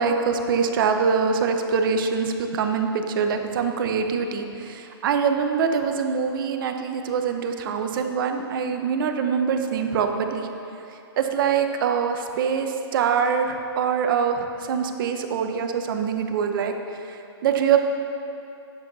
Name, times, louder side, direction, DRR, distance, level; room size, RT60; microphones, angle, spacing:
voice 1, 0.0-10.5 11.2-17.8, right 6 dB, 55° right, 5 dB, 0.8 m, -24 dB
10.5 x 7.2 x 4.0 m, 2.7 s
hypercardioid pair, 145°, 14 cm